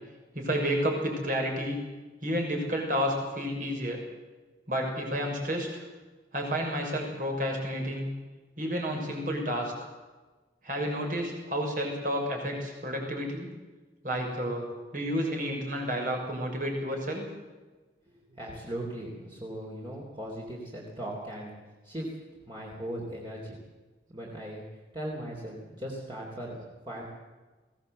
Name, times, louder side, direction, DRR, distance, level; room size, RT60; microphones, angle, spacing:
voice 1, 0.3-1.8 2.2-4.0 4.7-5.8 6.3-8.1 8.6-9.9 10.6-13.5 14.0-14.7 14.9-17.2, equal, 45° right, 1 dB, 6.3 m, -30 dB
voice 2, 18.1-21.5 21.8-22.1 22.5-23.6 24.1-24.6 24.9-26.6 26.9-27.0, right 1 dB, 25° right, -4 dB, 3.9 m, -38 dB
22.0 x 17.0 x 8.1 m, 1.3 s
head